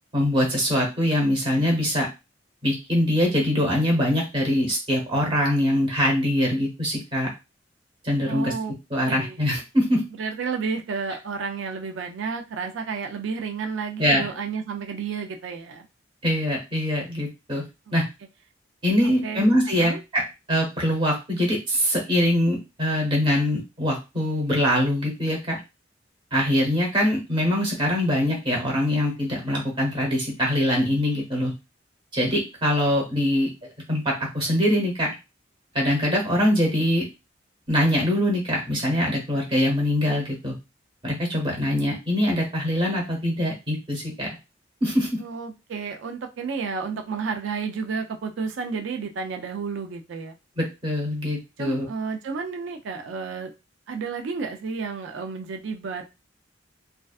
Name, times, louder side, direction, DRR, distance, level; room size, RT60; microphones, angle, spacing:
voice 1, 0.1-2.1 2.6-7.3 8.0-8.5 8.9-10.0 14.0-14.3 16.2-17.6 17.9-18.0 18.8-20.2 20.5-25.6 26.3-31.5 32.1-33.5 33.9-35.1 35.7-37.1 37.7-40.5 41.0-44.3 44.8-45.1 50.6-51.9, equal, 25° right, -1 dB, 0.9 m, -23 dB
voice 2, 8.3-8.7 9.1-9.4 10.2-15.9 17.9-18.0 19.0-19.5 19.8-20.0 45.2-50.4 51.6-53.5 53.9-56.1, right 5 dB, 80° right, 5 dB, 0.4 m, -31 dB
2.4 x 2.3 x 2.3 m, 0.26 s
head